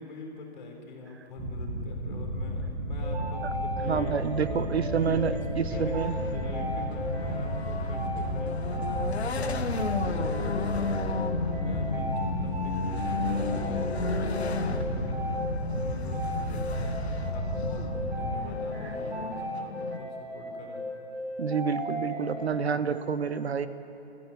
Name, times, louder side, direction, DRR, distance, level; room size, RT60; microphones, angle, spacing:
voice 1, 0.0-10.7 11.0-15.2 15.7-20.9, left 3 dB, 45° left, 1 dB, 3.8 m, -44 dB
sound 1, 1.4-18.3, equal, 20° right, 6.8 m, -33 dB
sound 2, 3.0-22.4, equal, 50° right, 6.1 m, -36 dB
voice 2, 3.8-6.1 21.4-23.7, right 6 dB, 80° right, 12 dB, 1.2 m, -28 dB
sound 3, 5.7-20.0, left 5 dB, 80° left, 1.6 m, -34 dB
21.5 x 15.0 x 9.5 m, 2.9 s
hypercardioid pair, 170°, 32 cm